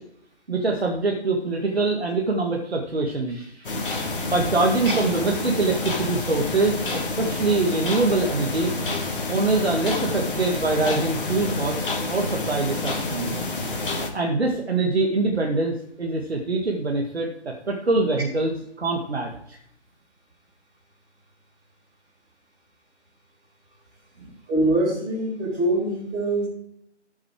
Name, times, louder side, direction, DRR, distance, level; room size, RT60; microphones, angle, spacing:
voice 1, 0.5-3.7 4.2-8.7 9.3-13.3 14.1-19.6 24.2-24.3, right 3 dB, 60° right, 0 dB, 2.2 m, -24 dB
sound 1, 3.6-14.1, left 2 dB, 50° left, 2.3 m, -28 dB
voice 2, 24.5-26.5, right 1 dB, 15° right, -5 dB, 5.1 m, -23 dB
13.5 x 7.2 x 5.0 m, 0.72 s
figure-of-eight pair, 155°, 35 cm